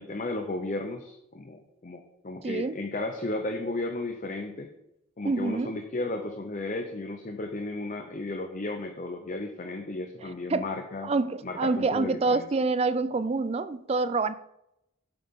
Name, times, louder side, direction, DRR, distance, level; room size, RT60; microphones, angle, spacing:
voice 1, 0.0-4.7 5.2-11.1 11.4-12.5, left 2 dB, 40° left, 0.6 m, -34 dB
voice 2, 2.4-2.8 5.2-5.7 10.5-10.6 11.0-14.3, right 3 dB, 30° right, 0.3 m, -26 dB
7.9 x 7.9 x 3.6 m
head